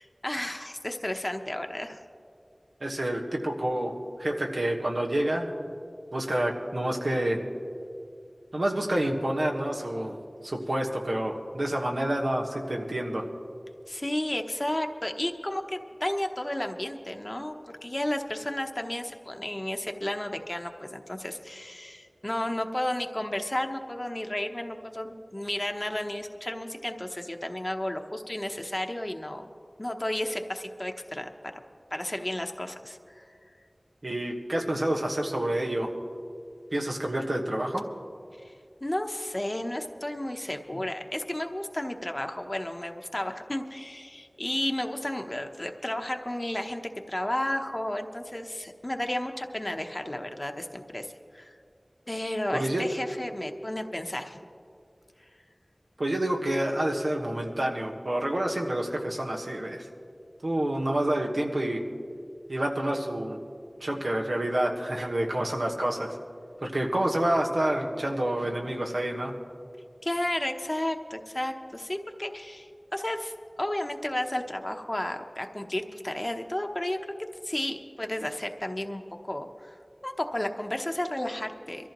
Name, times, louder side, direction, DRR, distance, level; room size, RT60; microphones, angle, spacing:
voice 1, 0.0-2.0 13.9-29.5 29.8-31.3 31.9-33.2 38.4-38.5 38.8-46.8 47.1-51.6 52.1-54.4 70.0-77.0 77.4-79.0 79.3-79.8 80.0-81.9, left 1 dB, 35° left, 4 dB, 0.9 m, -32 dB
voice 2, 2.8-5.5 6.1-7.4 8.5-10.1 10.4-13.3 34.0-35.9 36.7-37.9 52.5-52.9 56.0-59.8 60.4-61.8 62.5-63.4 63.8-66.2 66.6-69.3, right 1 dB, 90° right, 0 dB, 1.4 m, -28 dB
23.5 x 14.0 x 3.0 m, 2.3 s
wide cardioid pair, 45°, 0 cm